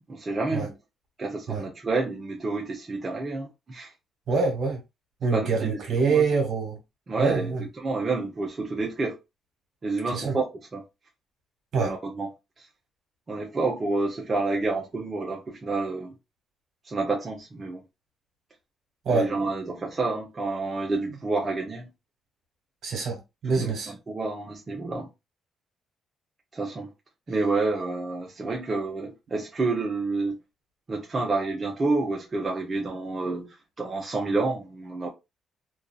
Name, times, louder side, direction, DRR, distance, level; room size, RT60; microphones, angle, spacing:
voice 1, 0.1-0.7 1.2-3.9 5.3-6.4 7.1-9.2 9.8-10.8 11.8-12.3 12.6-12.7 13.3-16.1 16.9-17.8 19.1-21.9 23.4-25.1 26.5-26.9 27.3-30.4 30.9-35.1, right 3 dB, 30° right, 0.7 m, -29 dB
voice 2, 4.3-4.8 5.2-6.8 7.2-7.6 10.1-10.3 11.7-11.9 19.0-19.3 22.8-23.9, right 4 dB, 65° right, 1.3 m, -25 dB
2.6 x 2.4 x 2.3 m
cardioid pair, 90°, 0 cm